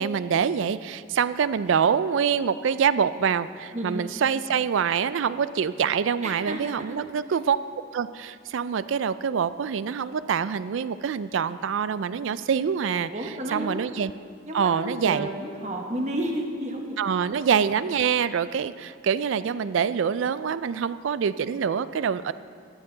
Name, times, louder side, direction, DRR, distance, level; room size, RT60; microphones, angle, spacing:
voice 1, 0.0-7.6 7.9-14.1 14.5-15.3 17.0-22.3, right 7 dB, 70° right, 15 dB, 0.4 m, -25 dB
voice 2, 3.7-4.1 6.2-7.0 13.0-13.9 14.5-17.4, right 1 dB, 35° right, 2 dB, 1.2 m, -32 dB
14.0 x 9.8 x 3.9 m, 2.2 s
head